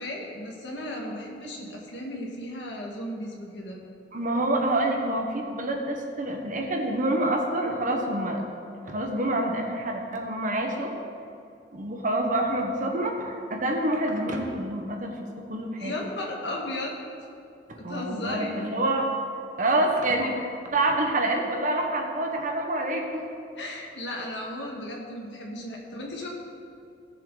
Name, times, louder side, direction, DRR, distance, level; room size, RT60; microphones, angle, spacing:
voice 1, 0.0-3.8 15.8-17.0 17.7-18.5 23.6-26.3, left 1 dB, 75° left, -1 dB, 2.0 m, -35 dB
voice 2, 4.1-8.4 8.8-10.9 11.7-16.0 17.7-19.1 19.6-23.2, right 1 dB, 45° right, 2 dB, 1.4 m, -27 dB
17.0 x 7.4 x 4.1 m, 2.6 s
head